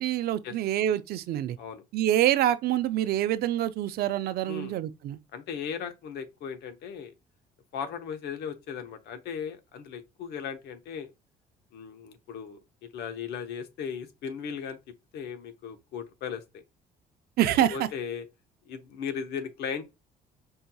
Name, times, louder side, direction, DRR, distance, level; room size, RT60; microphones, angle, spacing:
voice 1, 0.0-1.6 1.9-5.2 17.4-17.9, right 12 dB, 65° right, 0.5 m, -26 dB
voice 2, 4.4-4.8 5.3-7.1 7.7-11.1 11.7-12.6 12.9-14.8 15.1-16.4 17.7-18.2 18.6-19.8, left 7 dB, 75° left, 0.9 m, -37 dB
5.4 x 2.8 x 2.3 m
cardioid pair, 110°, 17 cm